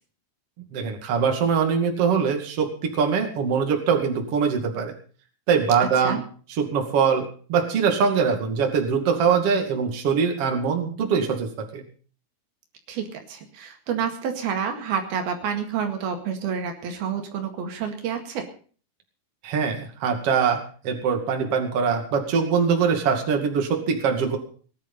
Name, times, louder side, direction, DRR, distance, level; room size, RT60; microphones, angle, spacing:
voice 1, 0.6-4.9 5.5-6.2 6.6-11.8 19.4-20.6 20.8-24.4, right 6 dB, 45° right, 4 dB, 3.0 m, -23 dB
voice 2, 12.9-18.5, right 7 dB, 80° right, 5 dB, 3.9 m, -29 dB
18.5 x 11.0 x 5.5 m, 0.42 s
omnidirectional pair, 4.3 m